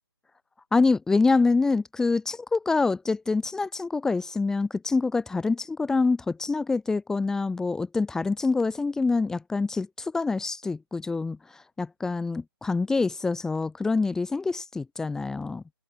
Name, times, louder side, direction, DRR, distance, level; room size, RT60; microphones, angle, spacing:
voice 1, 0.7-15.6, left 3 dB, 5° left, 2.6 m, -26 dB
open air
figure-of-eight pair, 150°, 13 cm